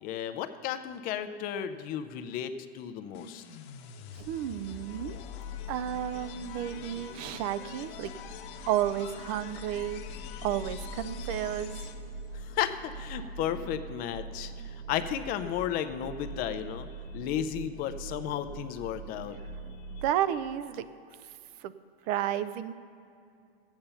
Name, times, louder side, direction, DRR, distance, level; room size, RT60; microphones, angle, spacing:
voice 1, 0.0-3.4 12.4-14.5 14.9-16.9 17.1-19.4, left 10 dB, 30° left, 9 dB, 0.5 m, -33 dB
sound 1, 3.1-12.3, left 10 dB, 50° left, 1.2 m, -44 dB
sound 2, 4.1-20.1, right 4 dB, 85° right, 1.4 m, -44 dB
voice 2, 4.2-5.2 5.7-8.1 8.7-10.0 10.4-11.9 20.0-20.9 21.6-21.7 22.1-22.7, right 11 dB, 40° right, 14 dB, 0.5 m, -32 dB
14.0 x 8.9 x 5.6 m, 2.5 s
supercardioid pair, 140°, 32 cm